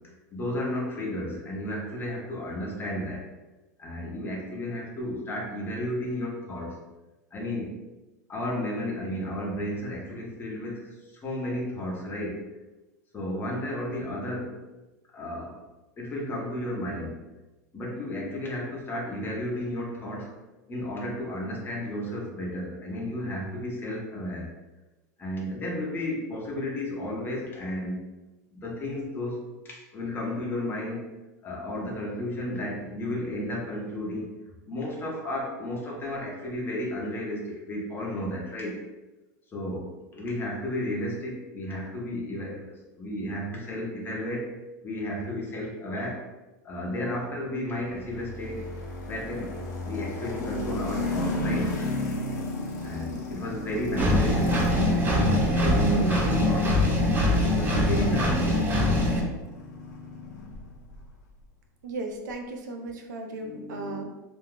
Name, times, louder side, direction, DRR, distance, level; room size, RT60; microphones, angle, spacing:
voice 1, 0.3-3.3 3.8-6.8 7.3-7.7 8.3-12.4 13.1-14.6 15.1-15.6 16.0-17.2 17.7-20.3 20.7-24.5 25.2-28.0 28.5-31.1 31.4-34.3 34.6-38.8 39.5-44.5 44.8-46.2 46.6-48.7 49.1-49.6 49.8-51.7 52.8-56.7 57.3-58.4 63.4-64.1, left 1 dB, 20° left, -2 dB, 0.8 m, -33 dB
sound 1, 47.9-61.1, left 2 dB, 85° left, 0.7 m, -35 dB
Engine, 54.0-59.2, left 1 dB, 20° right, 0.6 m, -23 dB
voice 2, 61.8-64.1, right 2 dB, 85° right, 3 dB, 0.5 m, -36 dB
2.4 x 2.2 x 3.6 m, 1.1 s
supercardioid pair, 125°, 9 cm